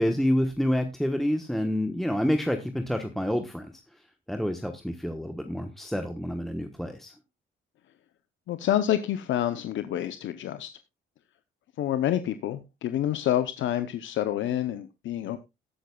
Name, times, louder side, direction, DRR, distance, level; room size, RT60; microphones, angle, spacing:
voice 1, 0.0-3.7 4.3-7.1, equal, ahead, 6 dB, 1.1 m, -28 dB
voice 2, 8.5-10.7 11.8-15.4, left 11 dB, 70° left, 11 dB, 0.7 m, -28 dB
18.0 x 7.8 x 2.3 m, 0.24 s
cardioid pair, 90°, 20 cm